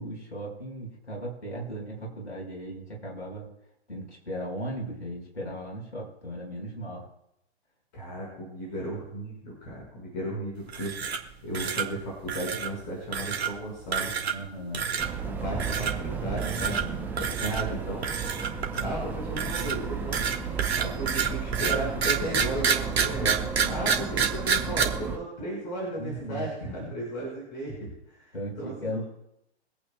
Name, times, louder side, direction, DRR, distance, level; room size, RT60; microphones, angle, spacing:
voice 1, 0.0-3.5 3.9-7.1 14.3-14.9 26.0-26.9 28.3-29.0, right 1 dB, 80° left, -2 dB, 4.5 m, -37 dB
voice 2, 7.9-14.1 14.8-18.1 18.7-23.4 23.6-29.0, right 1 dB, 40° left, -4 dB, 5.4 m, -35 dB
sound 1, 10.7-11.3 11.5-11.9 12.3-12.7 13.1-13.5 13.9-14.5 14.7-15.1 15.6-15.9 16.4-16.8 17.2-17.6 18.0-19.0 19.4-24.8, right 7 dB, 65° right, 1.6 m, -28 dB
sound 2, 15.0-25.2, right 6 dB, 5° right, 0.7 m, -33 dB
24.0 x 8.7 x 2.3 m, 0.82 s
figure-of-eight pair, 115°, 33 cm